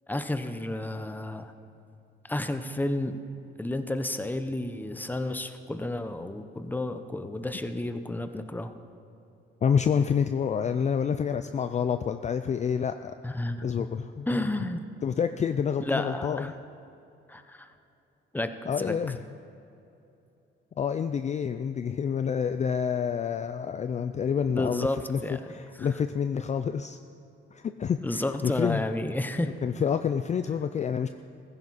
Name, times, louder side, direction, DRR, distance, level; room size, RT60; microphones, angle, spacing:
voice 1, 0.1-1.5 2.2-3.2 3.6-8.7 13.2-13.7 14.3-14.8 15.8-16.5 17.3-17.7 18.3-19.0 24.5-25.4 25.8-25.9 28.0-29.5, left 1 dB, 10° left, 9 dB, 0.9 m, -31 dB
voice 2, 9.6-13.1 13.6-14.3 15.0-16.5 18.7-19.2 20.8-25.2 25.5-27.0 27.5-28.9 29.6-31.1, left 7 dB, 35° left, 9 dB, 0.4 m, -28 dB
15.5 x 15.0 x 4.2 m, 2.8 s
cardioid pair, 90°, 20 cm